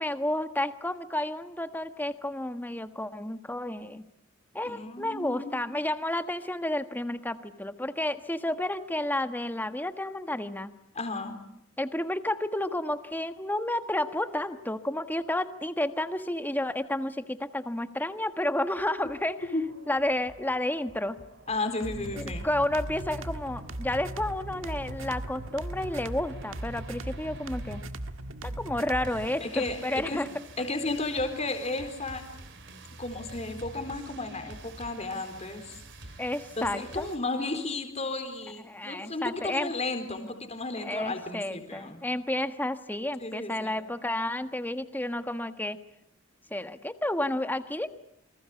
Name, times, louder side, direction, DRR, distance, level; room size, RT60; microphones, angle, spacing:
voice 1, 0.0-4.0 4.5-10.7 11.8-19.4 19.9-21.2 22.1-27.8 28.4-30.3 36.2-37.1 38.6-39.7 40.8-45.8 46.5-47.9, left 1 dB, 10° left, 9 dB, 1.4 m, -31 dB
voice 2, 4.7-5.6 10.9-11.4 19.5-19.6 21.5-22.5 29.4-30.2 30.6-32.2 33.0-35.8 36.6-42.0 43.2-43.8, left 2 dB, 35° left, 6 dB, 4.0 m, -33 dB
sound 1, 18.6-37.2, right 2 dB, 60° right, 3.6 m, -49 dB
sound 2, 21.8-29.4, right 1 dB, 80° right, 1.7 m, -38 dB
28.0 x 25.5 x 8.4 m, 0.75 s
head